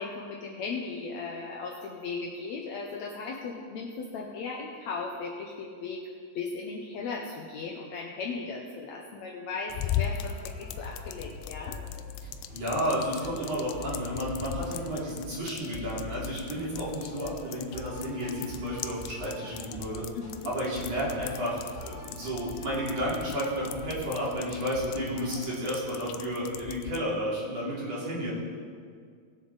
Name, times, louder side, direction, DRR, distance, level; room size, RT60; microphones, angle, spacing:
voice 1, 0.0-6.0 6.4-11.8 20.1-20.5 25.1-25.2, left 4 dB, 70° left, -1 dB, 1.8 m, -37 dB
sound 1, 9.7-27.0, left 10 dB, 90° left, 2.3 m, -40 dB
sound 2, 9.7-25.5, left 2 dB, ahead, 3.1 m, -45 dB
voice 2, 12.5-20.0 20.4-28.3, equal, 50° right, -7 dB, 3.8 m, -32 dB
19.5 x 6.9 x 4.0 m, 2.1 s
omnidirectional pair, 3.9 m